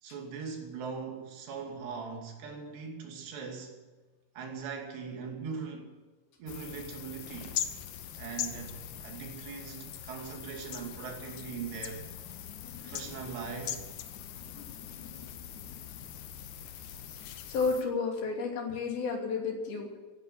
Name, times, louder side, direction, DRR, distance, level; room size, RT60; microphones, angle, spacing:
voice 1, 0.0-3.8 4.4-6.0 6.4-7.6 8.2-12.1 12.8-13.8, right 5 dB, 75° right, 4.7 m, -40 dB
sound 1, 6.5-17.8, left 10 dB, 85° left, 1.6 m, -41 dB
voice 2, 17.5-20.0, left 4 dB, 60° left, 4.7 m, -31 dB
16.5 x 11.0 x 7.1 m
omnidirectional pair, 4.9 m